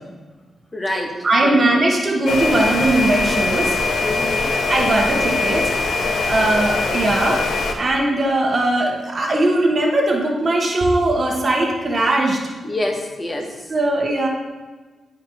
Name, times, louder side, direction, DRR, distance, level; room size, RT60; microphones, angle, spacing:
voice 1, 0.7-1.2 1.4-1.6 4.0-4.5 6.0-6.4 12.6-13.7, left 1 dB, 25° left, 2 dB, 1.2 m, -27 dB
voice 2, 1.2-3.8 4.7-5.7 6.3-7.4 7.8-12.4 13.7-14.3, right 2 dB, 40° right, 0 dB, 1.2 m, -19 dB
sound 1, 2.3-7.7, left 3 dB, 80° left, 1.0 m, -22 dB
11.0 x 5.0 x 3.0 m, 1.3 s
cardioid pair, 95°, 0 cm